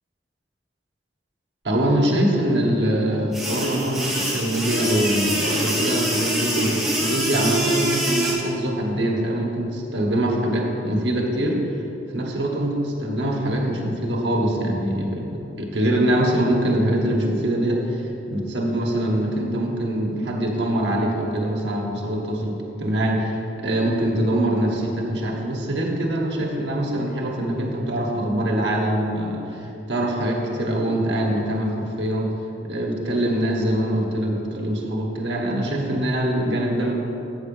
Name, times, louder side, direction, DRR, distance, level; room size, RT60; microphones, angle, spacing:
voice 1, 1.6-11.6 12.1-23.3 23.6-32.3 32.7-36.9, right 1 dB, 80° right, 0 dB, 1.2 m, -23 dB
sound 1, 3.3-8.3, right 1 dB, ahead, 1.3 m, -24 dB
7.9 x 6.1 x 5.4 m, 2.9 s
head